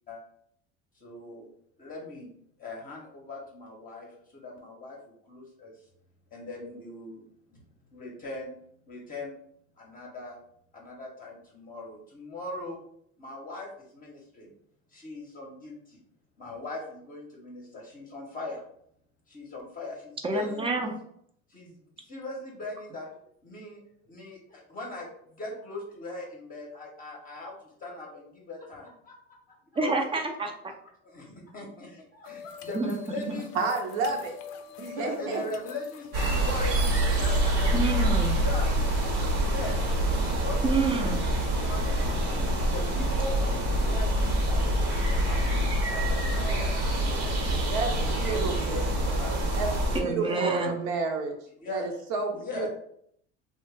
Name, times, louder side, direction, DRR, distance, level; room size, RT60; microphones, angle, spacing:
voice 1, 0.9-1.5 1.8-2.3 2.6-5.9 6.3-7.2 7.5-7.6 7.9-8.5 8.9-9.4 9.8-10.4 10.7-12.8 13.2-14.5 14.9-16.0 16.4-18.6 19.3-20.8 21.5-29.1 29.7-29.9 31.0-33.7 34.0-34.2 34.9-36.9 37.2-37.8 38.4-39.8 40.4-40.6 41.0-41.1 41.5-44.8 45.3-49.6 50.1-50.6 51.6-52.0 52.3-52.7, left 2 dB, 25° left, -1 dB, 0.7 m, -40 dB
voice 2, 20.2-20.9 29.8-30.7 32.7-32.9 37.7-38.3 40.6-41.2 49.9-50.8, right 3 dB, 15° right, 3 dB, 0.4 m, -28 dB
sound 1, 32.2-38.0, left 7 dB, 90° left, 0.5 m, -44 dB
voice 3, 33.5-34.4 34.8-35.4 47.7-47.9 48.2-48.8 49.6-49.7 50.0-51.4 51.7-52.7, right 4 dB, 65° right, 2 dB, 0.7 m, -30 dB
sound 2, 36.1-50.0, right 1 dB, 80° right, 1.0 m, -26 dB
2.7 x 2.1 x 3.2 m, 0.68 s
supercardioid pair, 120°, 32 cm